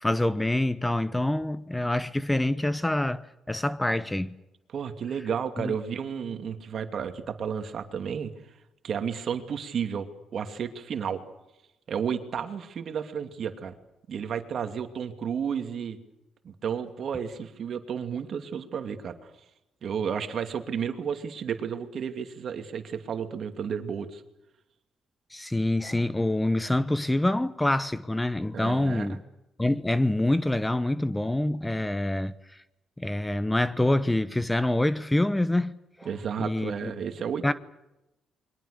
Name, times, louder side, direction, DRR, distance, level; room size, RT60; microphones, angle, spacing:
voice 1, 0.0-3.2 3.5-4.4 5.6-5.7 25.3-29.2 29.6-32.6 33.0-36.1 36.4-36.9 37.4-37.5, left 1 dB, 10° left, 0.9 m, -26 dB
voice 2, 4.7-8.3 8.8-10.1 10.3-11.2 11.9-13.7 14.1-16.0 16.4-19.3 19.8-24.2 28.5-29.2 36.0-37.5, right 7 dB, 60° right, 2.6 m, -32 dB
28.5 x 23.0 x 6.7 m
cardioid pair, 90°, 0 cm